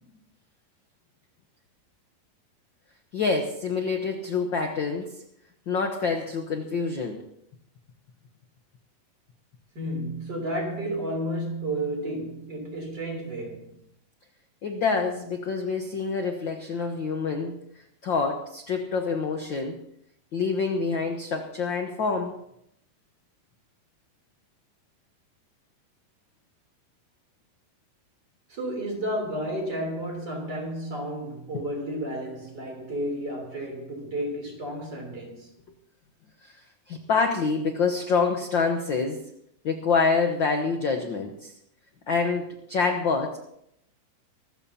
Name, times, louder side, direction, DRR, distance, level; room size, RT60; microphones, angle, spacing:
voice 1, 3.1-5.2 5.7-7.2 14.6-17.6 18.0-19.8 20.3-22.4 36.4-36.6 36.9-39.2 39.6-41.5 42.1-43.4, left 4 dB, 65° left, 1.1 m, -26 dB
voice 2, 9.8-13.7 28.5-35.5, right 1 dB, 30° right, 3.9 m, -32 dB
24.5 x 14.0 x 2.9 m
omnidirectional pair, 3.8 m